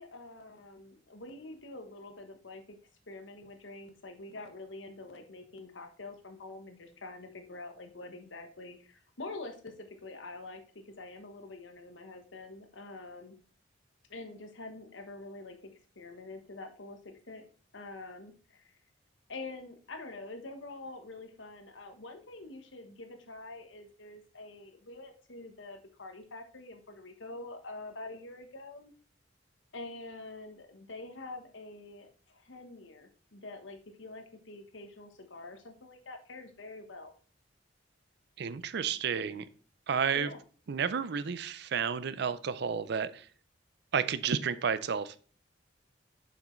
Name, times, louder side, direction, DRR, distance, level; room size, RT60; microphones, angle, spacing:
voice 1, 0.0-2.8 3.1-13.3 14.1-17.5 17.7-18.7 19.3-28.9 29.7-37.1 40.1-40.4, left 2 dB, 85° left, 6 dB, 1.2 m, -46 dB
voice 2, 38.4-39.5 39.9-40.3 40.7-43.3 43.9-45.1, right 6 dB, 60° right, 15 dB, 0.5 m, -31 dB
7.2 x 6.0 x 3.1 m, 0.41 s
head